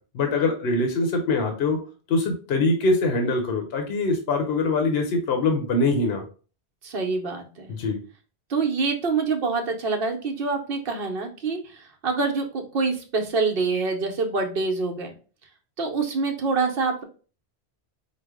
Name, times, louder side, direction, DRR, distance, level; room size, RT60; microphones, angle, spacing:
voice 1, 0.1-1.8 2.1-6.2 7.7-8.0, left 3 dB, 70° left, 4 dB, 1.0 m, -23 dB
voice 2, 6.8-7.7 8.5-11.6 12.0-15.1 15.8-17.0, right 4 dB, 60° right, 4 dB, 1.0 m, -26 dB
5.0 x 2.0 x 3.5 m, 0.37 s
omnidirectional pair, 1.1 m